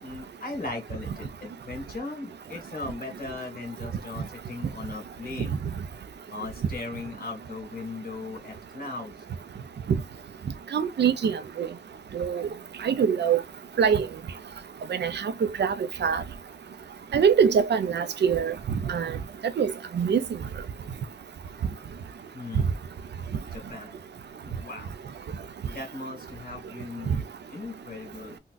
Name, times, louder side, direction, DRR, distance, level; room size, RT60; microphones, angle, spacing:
voice 1, 0.0-5.6 6.3-9.1 22.3-22.7 23.4-23.9 24.4-24.9 25.7-28.4, left 3 dB, 55° left, 1.9 m, -38 dB
voice 2, 10.7-11.7 12.1-12.5 12.8-13.4 13.8-14.1 14.9-15.3 15.6-15.7 16.0-16.2 17.1-18.5 18.9-19.2 19.6-20.2 27.1-27.2, right 7 dB, 80° right, 0.5 m, -23 dB
3.8 x 2.2 x 2.5 m
wide cardioid pair, 75°, 17 cm